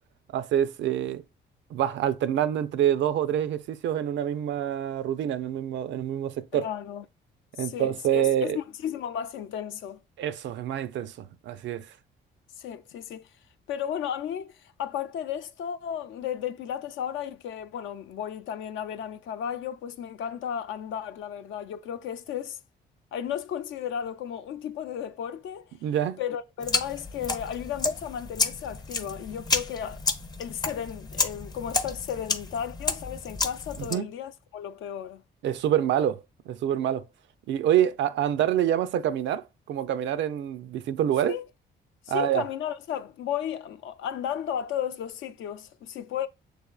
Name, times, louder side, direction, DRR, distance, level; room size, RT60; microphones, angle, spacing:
voice 1, 0.3-1.2 1.7-6.7 7.6-8.6 10.2-11.9 25.8-26.2 33.8-34.1 35.4-37.0 37.5-41.3 42.1-42.5, right 10 dB, 70° right, 0.4 m, -26 dB
voice 2, 6.5-7.0 7.6-10.0 12.6-13.3 13.7-22.6 23.1-25.7 26.2-30.0 30.4-35.2 41.3-41.4 42.1-46.3, left 9 dB, 80° left, 0.5 m, -34 dB
sound 1, 26.6-33.9, left 3 dB, 20° left, 0.5 m, -31 dB
6.4 x 3.4 x 2.3 m
cardioid pair, 90°, 20 cm